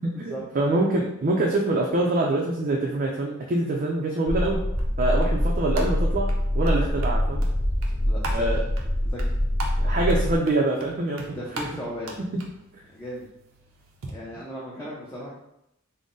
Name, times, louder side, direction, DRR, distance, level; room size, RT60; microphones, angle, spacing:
voice 1, 0.0-4.6 5.0-7.4 8.3-8.6 9.8-11.2, right 2 dB, 45° right, -1 dB, 0.4 m, -25 dB
sound 1, 4.3-10.4, equal, 50° left, 0.7 m, -24 dB
sound 2, 4.4-14.1, right 2 dB, 90° right, 0.6 m, -41 dB
voice 2, 5.0-5.4 8.1-8.6 9.0-9.4 9.8-10.2 11.3-12.2 12.9-13.3 14.1-15.4, equal, 15° left, -6 dB, 0.5 m, -37 dB
3.7 x 2.0 x 3.7 m, 0.81 s
head